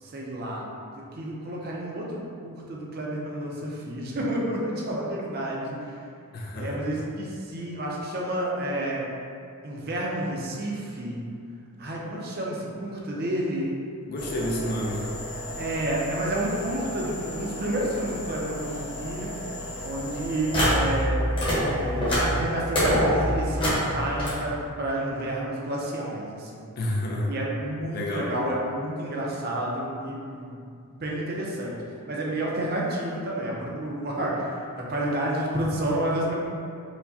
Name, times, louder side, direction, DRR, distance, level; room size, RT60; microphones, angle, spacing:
voice 1, 0.0-6.0 6.5-9.1 9.6-11.3 11.8-13.8 15.6-19.4 19.8-21.3 21.8-26.7 27.3-36.3, right 1 dB, 45° right, -3 dB, 0.5 m, -30 dB
voice 2, 6.3-6.8 14.1-15.1 26.8-27.3 27.9-28.3, left 1 dB, 45° left, -2 dB, 0.4 m, -29 dB
sound 1, 14.2-21.0 21.3-24.3, equal, 25° left, 0.9 m, -28 dB
4.4 x 2.1 x 2.7 m, 2.4 s
head